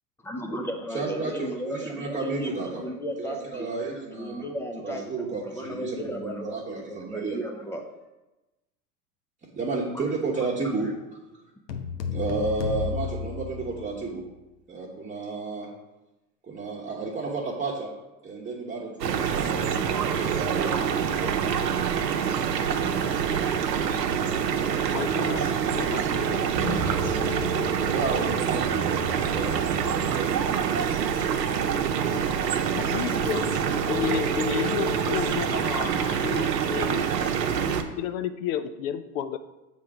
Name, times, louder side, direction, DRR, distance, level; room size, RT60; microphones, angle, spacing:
voice 1, 0.2-5.0 5.3-7.8 9.9-10.1 10.8-10.9, equal, 5° left, 2 dB, 0.5 m, -35 dB
voice 2, 0.9-2.8 3.2-4.4 4.8-7.4 9.5-10.9 12.1-14.2 14.7-15.7 16.5-17.9 18.2-20.8 27.9-30.3 31.3-31.4, right 3 dB, 15° right, -5 dB, 1.1 m, -32 dB
sound 1, 11.7-14.2, left 5 dB, 75° left, 1.0 m, -32 dB
sound 2, 19.0-37.8, right 7 dB, 85° right, 0.8 m, -26 dB
voice 3, 21.2-21.6 23.7-23.9 24.9-26.5 26.9-28.4 32.6-37.1 38.0-39.4, left 8 dB, 55° left, 10 dB, 0.7 m, -32 dB
sound 3, 26.5-31.1, right 4 dB, 55° right, 1.3 m, -35 dB
7.7 x 3.7 x 4.7 m, 1.0 s
hypercardioid pair, 100°, 49 cm